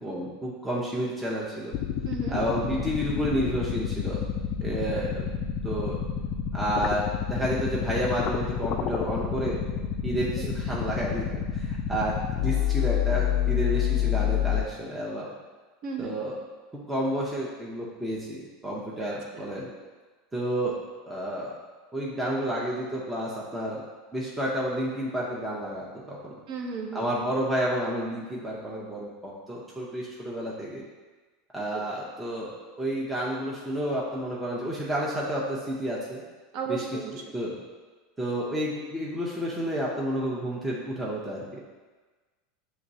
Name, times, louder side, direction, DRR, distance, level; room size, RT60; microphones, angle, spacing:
voice 1, 0.0-1.7 2.3-4.2 4.6-5.3 5.6-6.0 6.5-9.6 10.0-11.3 11.5-15.3 16.0-16.3 16.7-19.7 20.3-20.8 21.1-21.6 21.9-23.8 24.1-26.3 26.9-30.8 31.5-36.2 36.7-36.9 37.3-37.6 38.2-41.6, equal, 10° right, -5 dB, 0.7 m, -30 dB
sound 1, 1.7-14.6, left 9 dB, 50° left, 0.3 m, -28 dB
voice 2, 2.0-2.4 10.4-10.5 15.8-16.1 26.5-27.1 31.7-31.8 36.5-37.1, right 5 dB, 55° right, 2 dB, 0.8 m, -34 dB
6.4 x 3.0 x 2.7 m, 1.3 s
supercardioid pair, 125°, 0 cm